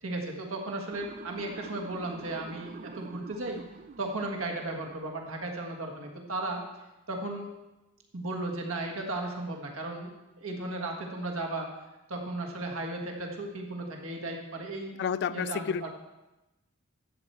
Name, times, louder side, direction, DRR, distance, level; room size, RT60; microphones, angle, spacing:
voice 1, 0.0-3.6 4.0-6.6 7.1-7.5 8.1-10.1 10.4-11.7 12.1-15.0 15.3-15.9, right 2 dB, 80° right, 1 dB, 1.6 m, -35 dB
Motor vehicle (road) / Siren, 0.9-5.1, right 4 dB, 40° right, 0.3 m, -46 dB
voice 2, 15.0-15.9, left 7 dB, 55° left, 17 dB, 0.3 m, -30 dB
11.5 x 7.8 x 4.6 m, 1.0 s
head